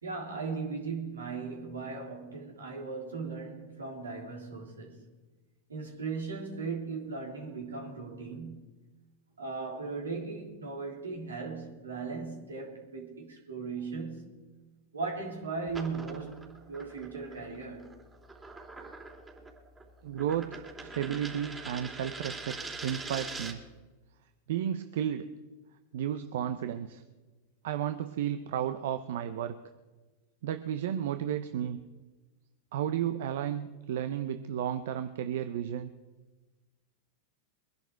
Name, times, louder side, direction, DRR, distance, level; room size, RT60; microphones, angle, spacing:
voice 1, 0.0-5.1 5.7-8.7 9.4-14.4 14.9-17.9, right 4 dB, 90° right, 3.4 m, -38 dB
sound 1, 15.7-23.7, right 3 dB, 20° right, 3.1 m, -43 dB
voice 2, 20.0-23.6 24.5-25.3 25.9-27.0 27.6-29.6 30.4-31.8 32.7-35.9, right 10 dB, 70° right, 0.8 m, -33 dB
22.5 x 11.0 x 4.7 m
hypercardioid pair, 100°, 0 cm